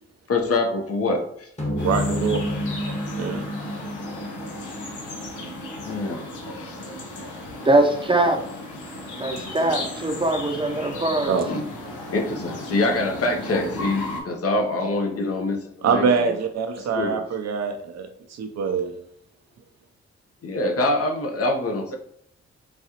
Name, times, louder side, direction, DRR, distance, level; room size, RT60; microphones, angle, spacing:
voice 1, 0.3-1.5 5.8-6.3 6.5-6.8 11.5-11.6 12.1-16.3 16.9-17.2 20.4-22.0, left 2 dB, 55° left, 3 dB, 0.8 m, -25 dB
sound 1, 1.6-6.2, left 1 dB, 25° left, 1.1 m, -30 dB
sound 2, 1.8-14.2, left 1 dB, 90° left, 0.8 m, -35 dB
voice 2, 1.8-2.6 3.1-3.4 11.3-11.4 15.8-19.0, right 5 dB, 60° right, 6 dB, 0.6 m, -24 dB
voice 3, 7.6-8.4 9.2-11.4, right 2 dB, 15° right, 5 dB, 0.6 m, -21 dB
4.1 x 2.3 x 2.9 m, 0.68 s
supercardioid pair, 45°, 29 cm